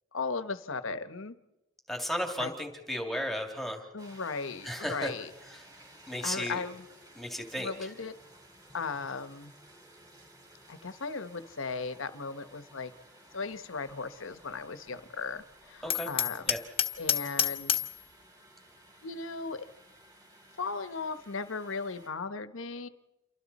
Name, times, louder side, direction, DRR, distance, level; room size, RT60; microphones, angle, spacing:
voice 1, 0.1-1.4 2.4-2.5 3.9-5.3 6.2-6.8 7.6-8.1 8.7-9.5 10.7-12.9 13.3-16.5 17.0-17.8 19.0-19.7 20.6-22.9, left 4 dB, 80° left, 11 dB, 1.0 m, -37 dB
voice 2, 1.9-3.9 4.6-5.1 5.5-5.7 6.1-6.6 7.1-7.9 15.8-16.1 16.5-16.6, equal, ahead, 2 dB, 2.5 m, -34 dB
sound 1, 4.0-22.1, right 1 dB, 20° right, 4.4 m, -56 dB
Hammer, 15.9-18.0, left 9 dB, 30° left, 1.1 m, -29 dB
28.5 x 24.5 x 4.2 m, 0.96 s
head